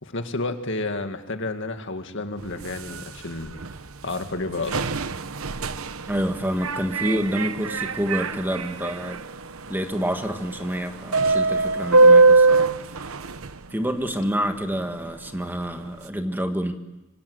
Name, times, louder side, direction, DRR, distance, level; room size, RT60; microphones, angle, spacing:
voice 1, 0.0-3.6 4.0-4.9, left 2 dB, 60° left, 6 dB, 2.1 m, -30 dB
sound 1, 2.4-13.9 14.8-14.9 15.3-15.4 16.1-16.2, right 3 dB, 80° right, 1.0 m, -22 dB
voice 2, 6.1-9.2 9.7-13.1 13.7-16.7, equal, 10° right, 6 dB, 1.7 m, -28 dB
26.0 x 25.0 x 7.9 m, 1.0 s
head